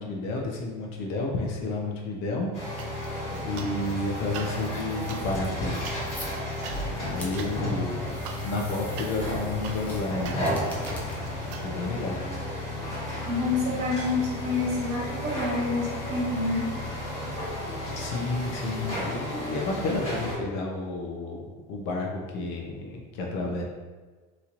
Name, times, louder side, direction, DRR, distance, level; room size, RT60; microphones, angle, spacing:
voice 1, 0.0-3.1 3.4-5.8 6.1-6.3 6.9-8.2 8.4-10.6 11.6-12.2 18.0-23.6, left 2 dB, 60° left, 0 dB, 0.6 m, -31 dB
sound 1, 2.5-20.4, left 1 dB, 30° left, 1.3 m, -33 dB
sound 2, 2.8-3.9 4.2-11.7, right 6 dB, 80° right, 0.4 m, -44 dB
sound 3, 3.7-12.9, left 1 dB, 5° left, 0.3 m, -48 dB
voice 2, 13.3-16.7, left 3 dB, 30° right, -6 dB, 0.9 m, -28 dB
3.0 x 2.8 x 2.5 m, 1.3 s
cardioid pair, 170°, 21 cm